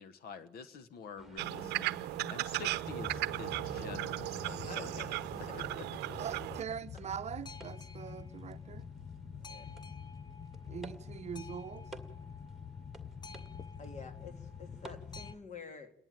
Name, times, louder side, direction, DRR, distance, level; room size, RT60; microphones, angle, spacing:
voice 1, 0.0-5.0 5.5-5.9, left 6 dB, 65° left, 1.2 m, -48 dB
sound 1, 1.2-15.4, right 1 dB, ahead, 2.1 m, -53 dB
sound 2, 1.4-6.6, right 17 dB, 85° right, 0.7 m, -36 dB
Boat Water vehicle, 2.8-15.3, left 6 dB, 25° left, 0.7 m, -47 dB
voice 2, 4.7-5.6 6.1-6.2 9.4-9.7 13.8-15.9, left 4 dB, 45° left, 2.2 m, -49 dB
voice 3, 6.2-8.9 10.7-11.8, right 8 dB, 40° right, 0.7 m, -42 dB
28.5 x 11.0 x 9.0 m
cardioid pair, 110°, 17 cm